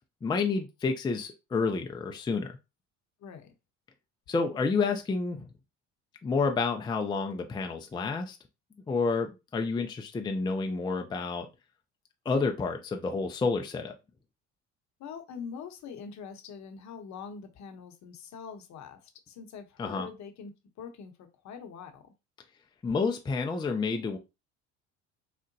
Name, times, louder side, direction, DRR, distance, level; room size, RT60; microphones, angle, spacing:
voice 1, 0.2-2.5 4.3-5.5 6.2-8.4 8.9-11.5 12.3-13.9 19.8-20.1 22.8-24.2, left 4 dB, 15° left, 0.4 m, -29 dB
voice 2, 15.0-20.5 20.8-22.0, left 6 dB, 50° left, 0.8 m, -44 dB
3.7 x 2.1 x 2.6 m
hypercardioid pair, 70°, 36 cm